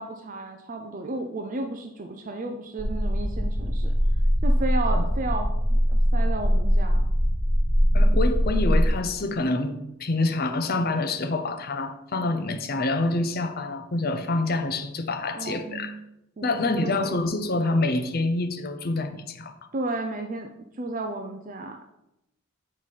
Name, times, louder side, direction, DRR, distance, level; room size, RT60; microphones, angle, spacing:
voice 1, 0.0-3.9 4.4-7.0 15.3-16.1 16.4-17.2 19.7-20.5 20.8-21.8, right 2 dB, 35° right, 4 dB, 0.4 m, -33 dB
sound 1, 2.8-8.9, equal, 15° left, 2.5 m, -22 dB
voice 2, 7.9-15.9 16.4-19.5, left 2 dB, 45° left, 8 dB, 0.6 m, -27 dB
7.3 x 4.7 x 4.1 m, 0.86 s
head